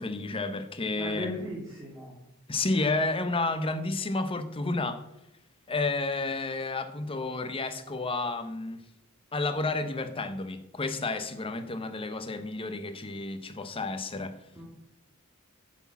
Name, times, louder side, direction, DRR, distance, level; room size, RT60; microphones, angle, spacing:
voice 1, 0.0-1.3 2.5-5.0 5.7-8.8 9.3-14.4, left 3 dB, 25° left, 0.9 m, -31 dB
voice 2, 1.0-2.2 14.5-14.6, left 1 dB, 15° right, 2.2 m, -37 dB
9.8 x 6.2 x 7.2 m
head